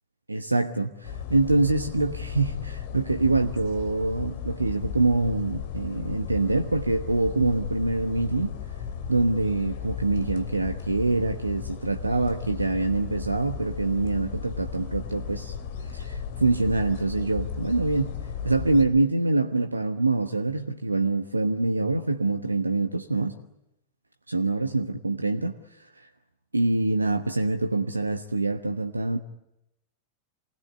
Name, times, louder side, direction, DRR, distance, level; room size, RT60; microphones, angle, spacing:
voice 1, 0.3-8.5 9.1-15.6 15.9-18.2 18.4-23.4 24.3-25.5 26.0-26.1 26.5-29.2, right 2 dB, 80° right, 1.2 m, -25 dB
sound 1, 1.0-18.8, left 7 dB, 55° left, 3.3 m, -35 dB
28.0 x 20.5 x 9.4 m
figure-of-eight pair, 90°, 0 cm